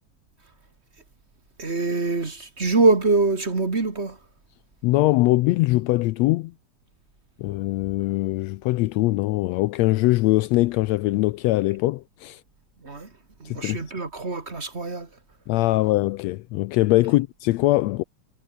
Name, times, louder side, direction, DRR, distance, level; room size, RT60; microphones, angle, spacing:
voice 1, 1.6-4.2 12.8-13.1 13.4-15.1, right 3 dB, 25° right, 1.9 m, -24 dB
voice 2, 4.8-6.5 7.4-12.4 13.5-13.8 15.5-18.0, left 18 dB, 80° left, 1.6 m, -22 dB
omnidirectional pair, 3.3 m